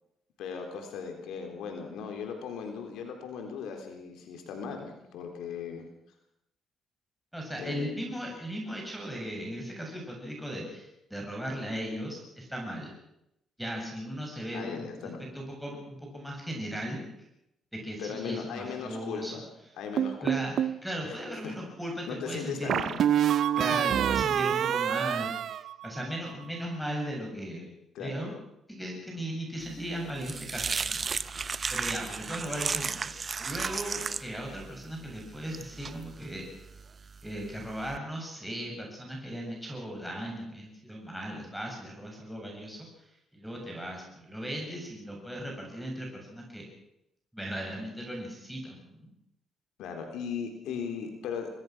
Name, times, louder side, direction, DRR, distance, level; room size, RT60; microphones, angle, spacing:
voice 1, 0.4-5.9 7.6-7.9 14.5-15.3 18.0-19.5 19.8-20.4 21.0-21.2 21.4-21.6 22.1-23.0 27.9-28.2 49.8-51.5, left 6 dB, 85° left, 4 dB, 3.8 m, -37 dB
voice 2, 7.3-12.9 13.6-17.0 17.7-19.4 20.2-22.9 23.6-27.7 28.0-28.3 28.7-31.0 31.7-36.4 37.2-42.9 43.3-46.7 47.3-49.1, equal, ahead, -1 dB, 7.6 m, -37 dB
sound 1, 20.0-20.8 22.7-26.3, right 10 dB, 65° right, 0.8 m, -27 dB
sound 2, 29.7-38.0, right 5 dB, 40° right, 0.9 m, -35 dB
25.0 x 19.0 x 6.2 m, 0.82 s
cardioid pair, 90°, 0 cm